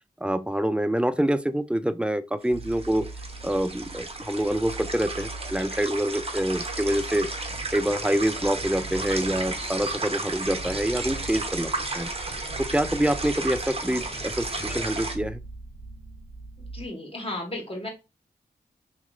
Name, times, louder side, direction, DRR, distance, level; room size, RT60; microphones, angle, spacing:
voice 1, 0.2-3.1 3.4-7.3 7.7-12.1 12.6-15.4, right 1 dB, 5° right, 0.3 m, -26 dB
sound 1, 2.4-15.2, right 2 dB, 35° right, 0.8 m, -34 dB
sound 2, 2.5-16.9, right 3 dB, 75° right, 0.5 m, -42 dB
sound 3, 7.5-14.9, equal, 65° left, 1.8 m, -45 dB
voice 2, 16.6-17.9, left 1 dB, 35° left, 1.4 m, -34 dB
3.0 x 2.9 x 2.3 m
cardioid pair, 40°, 18 cm